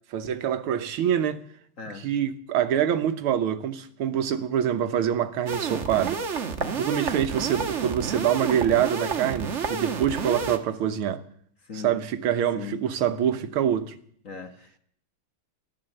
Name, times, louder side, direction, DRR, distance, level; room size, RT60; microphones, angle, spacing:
voice 1, 0.1-1.4 2.0-6.2 6.8-11.2 11.7-14.0, right 9 dB, 85° right, 1.9 m, -25 dB
voice 2, 1.8-2.1 6.6-7.0 10.3-10.5 11.6-12.0 12.5-12.8 14.2-14.8, left 5 dB, 40° left, 1.5 m, -40 dB
sound 1, 5.5-10.6, right 5 dB, 40° right, 1.2 m, -30 dB
14.5 x 12.0 x 7.7 m
omnidirectional pair, 2.3 m